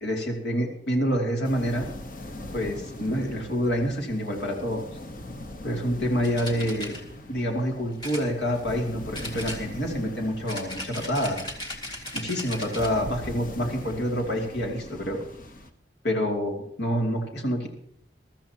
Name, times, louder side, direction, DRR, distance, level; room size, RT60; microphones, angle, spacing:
voice 1, 0.0-1.9 2.5-4.9 5.6-6.9 7.3-11.4 12.1-15.2 16.0-17.7, equal, 75° left, 1 dB, 2.7 m, -27 dB
sound 1, 1.4-15.7, left 1 dB, 50° left, 1.2 m, -41 dB
sound 2, 6.2-7.0 8.0-8.8 9.1-10.0 10.5-13.0, left 1 dB, 25° left, 2.2 m, -37 dB
22.0 x 13.5 x 2.9 m, 0.66 s
head